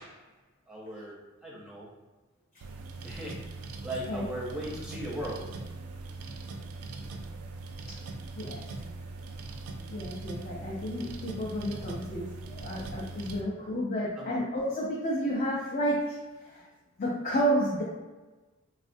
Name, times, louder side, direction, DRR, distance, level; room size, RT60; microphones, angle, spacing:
voice 1, 0.7-1.9 3.0-3.4 3.8-5.5 13.3-13.4 14.2-14.4, right 1 dB, 5° right, -5 dB, 0.6 m, -38 dB
sound 1, 2.6-13.4, right 3 dB, 85° right, 0.4 m, -41 dB
voice 2, 9.9-16.2 16.5-16.6 17.0-17.8, equal, 40° left, -5 dB, 0.4 m, -31 dB
3.3 x 2.4 x 2.5 m, 1.2 s
head